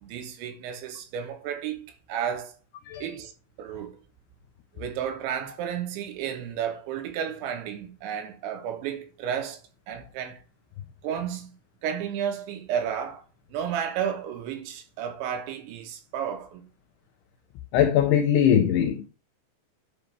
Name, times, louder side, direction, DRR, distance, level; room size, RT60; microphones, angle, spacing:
voice 1, 0.0-2.5 3.0-3.3 3.6-4.0 4.7-9.6 9.9-10.4 11.0-11.5 11.8-13.2 13.5-16.6, right 8 dB, 80° right, 3.2 m, -32 dB
voice 2, 17.7-19.1, left 9 dB, 90° left, 2.3 m, -21 dB
10.5 x 5.1 x 3.4 m
omnidirectional pair, 5.5 m